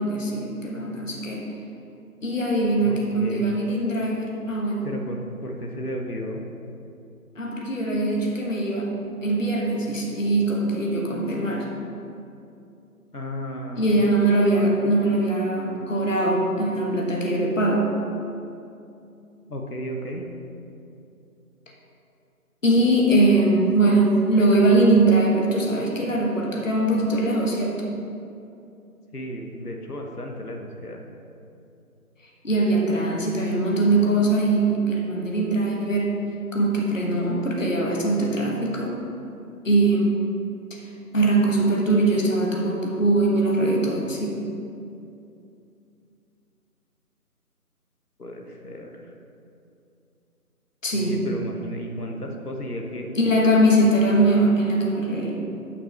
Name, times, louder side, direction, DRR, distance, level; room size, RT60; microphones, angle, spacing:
voice 1, 0.0-1.5 2.2-4.9 7.4-8.9 9.2-11.7 13.8-17.9 22.6-27.8 32.4-36.1 36.5-39.0 39.6-40.2 41.1-44.4 50.8-51.2 53.1-55.4, right 2 dB, 55° left, -1 dB, 1.4 m, -21 dB
voice 2, 2.8-3.4 4.8-6.4 13.1-14.5 19.5-20.2 29.1-31.0 48.2-48.9 50.9-53.1, equal, 80° left, 1 dB, 1.4 m, -34 dB
11.5 x 5.8 x 3.3 m, 2.6 s
figure-of-eight pair, 160°, 45 cm